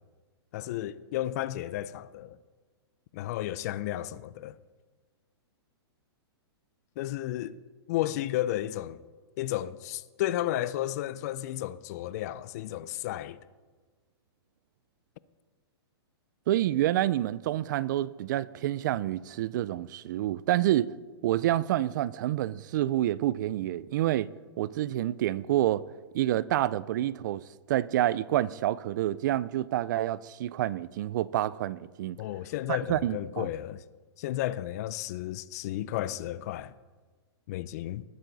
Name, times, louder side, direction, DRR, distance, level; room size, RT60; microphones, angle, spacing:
voice 1, 0.5-2.4 3.1-4.6 7.0-7.6 7.9-9.0 9.4-13.4 32.2-33.8 34.2-36.7 37.5-38.0, left 13 dB, 40° left, 0.4 m, -33 dB
voice 2, 16.5-20.9 21.2-24.3 24.6-25.8 26.1-32.2 32.7-33.5, right 13 dB, 45° right, 0.4 m, -28 dB
19.5 x 9.0 x 4.0 m
hypercardioid pair, 155°, 14 cm